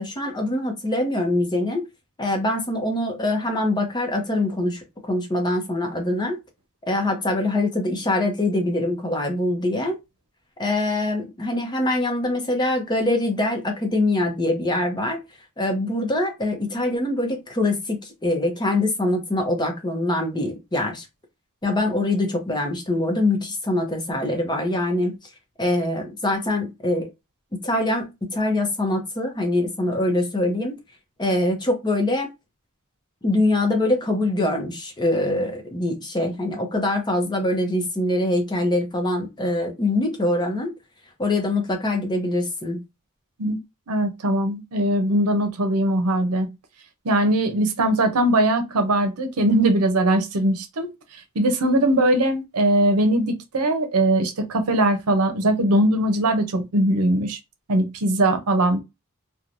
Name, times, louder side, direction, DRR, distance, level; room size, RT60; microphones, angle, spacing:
voice 1, 0.0-1.8 2.2-6.4 6.9-10.0 10.6-15.2 15.6-21.1 21.6-25.1 25.6-27.1 27.5-30.8 31.2-32.3 33.2-40.7 41.2-42.8, left 1 dB, 20° left, 0.7 m, -24 dB
voice 2, 43.9-46.5 47.0-57.4 57.7-58.8, right 1 dB, 80° right, 0.7 m, -21 dB
3.1 x 2.2 x 2.5 m
head